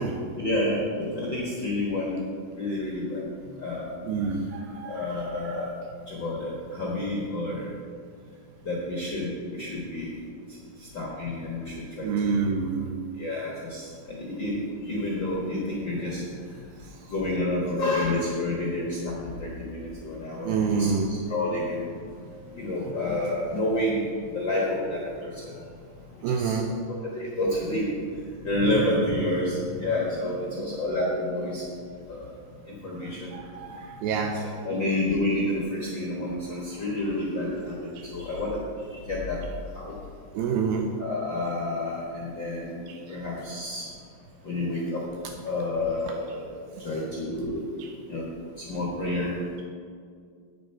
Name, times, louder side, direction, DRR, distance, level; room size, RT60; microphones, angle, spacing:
voice 1, 0.4-2.2 2.5-3.2 3.6-3.9 4.8-5.7 6.1-7.7 8.6-10.1 10.8-12.4 13.2-16.6 17.1-21.9 22.5-25.6 26.1-26.6 26.9-27.9 28.4-31.7 32.1-32.3 32.7-33.3 34.4-39.4 39.7-40.0 41.0-43.9 44.4-45.1 45.4-46.5 46.8-47.7 48.1-48.3 48.6-49.6, left 1 dB, 70° left, -3 dB, 1.1 m, -29 dB
voice 2, 4.0-5.7 12.0-13.1 16.8-16.9 20.4-21.2 26.2-26.7 33.0-34.8 38.0-38.1 40.3-40.9 42.9-43.2 46.3-46.4 46.7-46.9 47.8-47.9, right 5 dB, 80° right, 3 dB, 2.4 m, -29 dB
9.3 x 9.2 x 4.5 m, 2.2 s
omnidirectional pair, 4.3 m